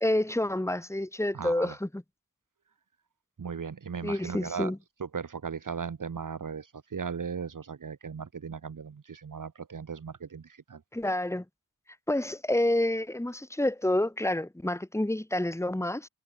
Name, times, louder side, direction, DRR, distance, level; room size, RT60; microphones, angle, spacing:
voice 1, 0.0-1.9 4.0-4.8 10.9-11.4 12.1-16.1, left 1 dB, 10° left, 1.6 m, -28 dB
voice 2, 1.3-1.8 3.4-4.7 5.0-10.8, right 6 dB, 65° right, 1.6 m, -37 dB
wide cardioid pair, 90°, 34 cm